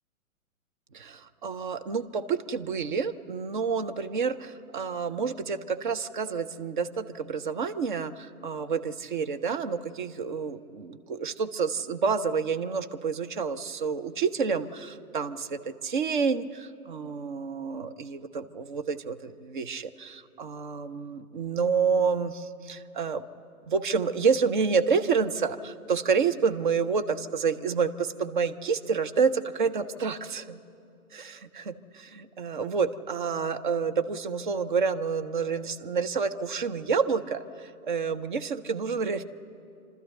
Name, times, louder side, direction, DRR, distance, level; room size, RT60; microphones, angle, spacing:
voice 1, 0.9-23.3 23.6-30.6 31.1-39.2, right 5 dB, 35° right, 10 dB, 0.7 m, -29 dB
27.5 x 13.0 x 7.9 m, 2.6 s
figure-of-eight pair, 125°, 44 cm